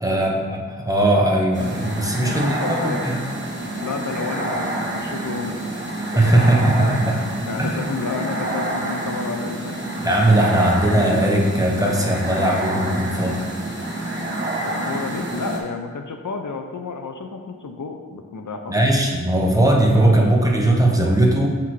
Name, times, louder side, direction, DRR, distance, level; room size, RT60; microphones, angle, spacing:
voice 1, 0.0-3.1 6.1-7.2 7.6-7.8 10.0-13.4 18.7-21.6, right 1 dB, 10° right, -1 dB, 0.9 m, -19 dB
sound 1, 1.5-15.6, right 1 dB, 35° right, 1.2 m, -28 dB
voice 2, 2.1-3.0 3.8-5.6 6.2-6.9 7.5-10.0 14.6-18.8, left 4 dB, 70° left, 4 dB, 0.6 m, -31 dB
5.9 x 5.6 x 3.2 m, 1.5 s
wide cardioid pair, 65°, 32 cm